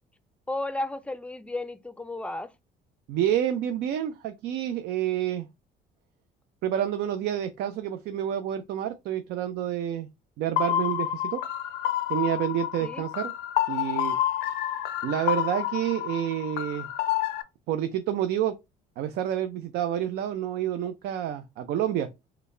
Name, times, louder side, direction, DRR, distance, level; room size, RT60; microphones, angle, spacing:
voice 1, 0.5-2.5 12.8-13.0, left 2 dB, 5° left, 0.5 m, -33 dB
voice 2, 3.1-5.5 6.6-10.1 10.4-11.4 12.1-13.3 13.7-14.2 15.0-16.9 17.7-18.6 19.0-22.1, right 10 dB, 75° right, 0.5 m, -28 dB
sound 1, 10.6-17.4, left 12 dB, 80° left, 0.6 m, -29 dB
3.9 x 2.2 x 3.2 m
cardioid pair, 110°, 17 cm